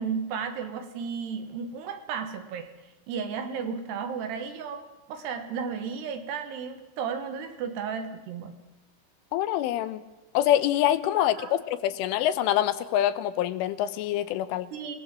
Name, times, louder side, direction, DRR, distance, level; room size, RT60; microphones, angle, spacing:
voice 1, 0.0-2.7 3.1-8.6 11.2-11.6 14.7-15.0, right 6 dB, 65° right, 8 dB, 3.3 m, -34 dB
voice 2, 9.3-10.0 10.3-14.7, left 12 dB, 85° left, 13 dB, 3.6 m, -25 dB
28.5 x 19.0 x 7.6 m, 1.0 s
omnidirectional pair, 5.6 m